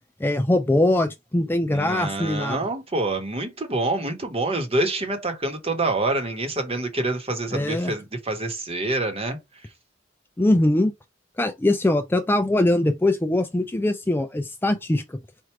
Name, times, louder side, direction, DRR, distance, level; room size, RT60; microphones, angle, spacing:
voice 1, 0.2-2.6 7.5-7.9 10.4-10.9 11.4-15.2, left 1 dB, 10° left, 0.4 m, -22 dB
voice 2, 1.7-9.4, right 2 dB, 30° right, 1.2 m, -26 dB
4.5 x 2.5 x 4.5 m
head